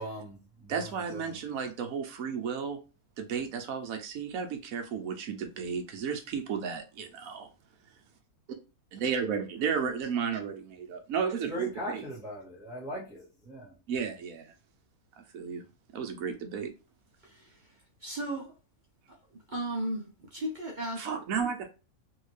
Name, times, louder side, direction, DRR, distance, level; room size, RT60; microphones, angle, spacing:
voice 1, 0.0-1.4 11.5-13.7, equal, ahead, 1.3 m, -40 dB
voice 2, 0.7-2.8 3.2-7.5 8.9-12.0 13.9-14.5 15.3-15.6 15.9-16.7 21.0-21.7, right 6 dB, 70° right, 1.1 m, -33 dB
voice 3, 18.0-18.5 19.5-21.1, right 1 dB, 45° right, 0.6 m, -35 dB
3.3 x 2.8 x 3.2 m
omnidirectional pair, 1.6 m